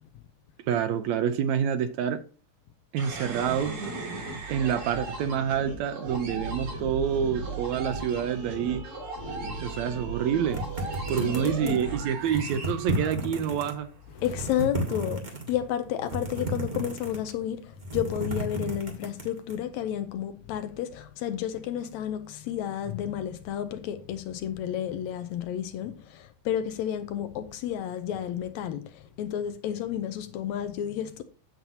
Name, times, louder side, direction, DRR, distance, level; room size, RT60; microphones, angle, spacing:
voice 1, 0.7-2.2 2.9-3.8 4.5-8.8 9.6-10.6 11.1-13.9 14.9-15.0, right 8 dB, 80° right, 1.8 m, -27 dB
sound 1, 3.0-13.6, right 3 dB, 60° right, 4.8 m, -36 dB
sound 2, 10.5-11.9 12.2-13.7 14.1-15.5 16.0-17.4 17.7-19.5, right 1 dB, 25° right, 1.0 m, -33 dB
voice 2, 11.2-11.8 14.2-15.2 15.5-31.2, left 10 dB, 80° left, 1.8 m, -31 dB
8.9 x 7.9 x 2.8 m
omnidirectional pair, 3.5 m